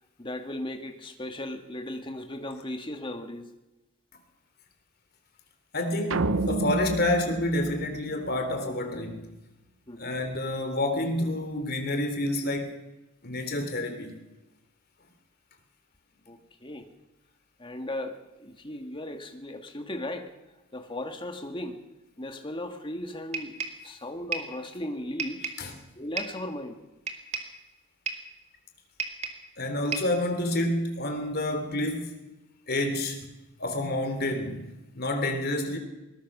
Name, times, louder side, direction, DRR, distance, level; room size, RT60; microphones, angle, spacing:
voice 1, 0.2-3.5 9.9-10.1 16.3-16.9 17.6-20.3 20.7-21.8 22.2-25.5 26.0-26.8, left 1 dB, 25° left, 1.8 m, -37 dB
voice 2, 5.7-9.3 10.0-12.7 13.2-14.1 25.6-25.8 29.6-32.2 32.7-33.2 33.6-34.7 34.9-35.8, left 1 dB, 45° left, 3.2 m, -28 dB
sound 1, 6.1-8.6, right 2 dB, 60° right, 0.9 m, -30 dB
sound 2, 23.3-23.9 24.3-24.6 25.2-25.7 26.2-26.4 27.1-27.6 28.1-28.3 29.0-29.5 29.9-30.2, right 5 dB, 30° right, 2.2 m, -34 dB
21.0 x 20.0 x 6.2 m
head